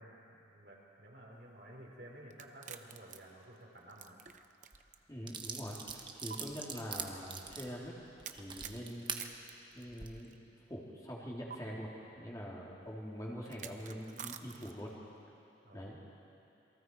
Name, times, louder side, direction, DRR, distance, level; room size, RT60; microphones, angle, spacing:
voice 1, 0.0-4.2 15.6-15.9, right 1 dB, 70° right, -3 dB, 4.5 m, -53 dB
sound 1, 2.3-5.0 5.3-5.4 6.3-6.4 8.2-10.4 11.5-11.6 13.4-14.9, right 8 dB, 45° right, 0.8 m, -48 dB
sound 2, 4.7-4.8 5.3-9.2 9.8-10.1, right 6 dB, 25° right, 1.1 m, -43 dB
voice 2, 5.1-7.9 8.3-10.4 10.7-11.9 12.1-14.9 15.7-16.0, equal, 20° left, -4 dB, 3.2 m, -44 dB
28.0 x 23.0 x 4.8 m, 2.8 s
head